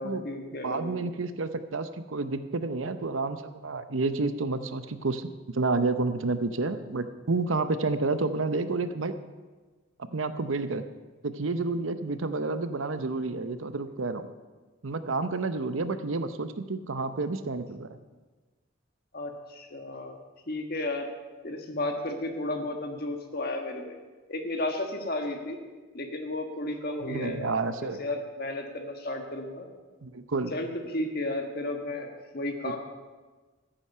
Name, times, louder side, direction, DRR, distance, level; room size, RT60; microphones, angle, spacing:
voice 1, 0.0-1.1 19.1-20.2 20.5-21.1 21.4-24.0 24.3-25.6 25.9-27.5 28.0-29.7 30.5-32.8, left 1 dB, 50° left, 4 dB, 1.5 m, -33 dB
voice 2, 0.6-9.1 10.0-10.8 11.2-14.3 14.8-18.0 27.0-28.0 30.0-30.5 32.6-32.8, right 3 dB, 85° right, 11 dB, 0.8 m, -30 dB
14.5 x 8.9 x 5.6 m, 1.3 s
head